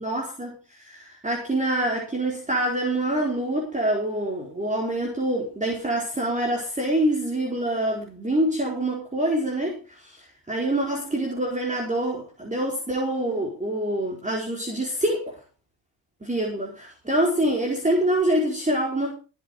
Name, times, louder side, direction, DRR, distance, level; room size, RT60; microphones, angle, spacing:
voice 1, 0.0-15.4 16.2-19.1, right 1 dB, 15° right, -1 dB, 4.7 m, -26 dB
17.0 x 8.6 x 5.1 m, 0.34 s
cardioid pair, 110°, 46 cm